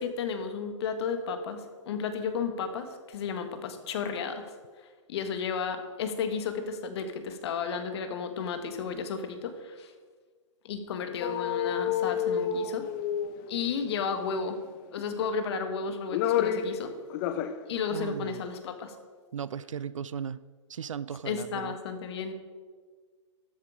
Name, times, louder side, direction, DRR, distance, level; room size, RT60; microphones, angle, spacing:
voice 1, 0.0-4.5 5.1-9.9 10.6-12.9 13.5-14.6 14.9-16.9 17.7-18.9 21.2-22.3, left 5 dB, 60° left, 8 dB, 1.5 m, -33 dB
sound 1, 11.2-13.8 15.0-15.6 15.9-16.8 17.1-17.6 17.9-18.0, left 9 dB, 40° left, 0.7 m, -29 dB
voice 2, 17.9-18.4 19.3-20.4 20.7-21.8, right 7 dB, 90° right, 18 dB, 0.4 m, -36 dB
12.5 x 8.0 x 5.0 m, 1.5 s
hypercardioid pair, 125°, 16 cm